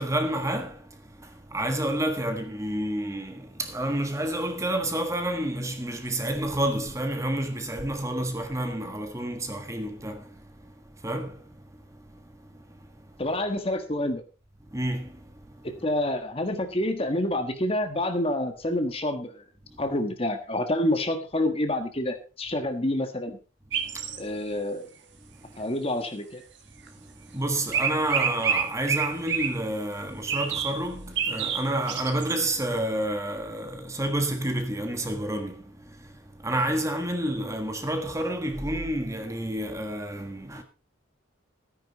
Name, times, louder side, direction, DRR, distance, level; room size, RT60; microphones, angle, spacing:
voice 1, 0.0-11.6 11.9-12.8 14.7-15.7 19.7-19.8 23.8-24.4 25.4-25.5 26.8-40.6, right 1 dB, 15° right, 1.5 m, -30 dB
voice 2, 13.2-14.2 15.6-19.4 19.8-23.4 24.2-24.8 25.6-26.4, left 1 dB, 30° left, 1.4 m, -28 dB
sound 1, 23.7-24.2 26.9-27.0 27.7-29.6 30.3-30.8 31.2-32.3, right 7 dB, 60° right, 1.9 m, -28 dB
13.5 x 10.0 x 4.1 m
head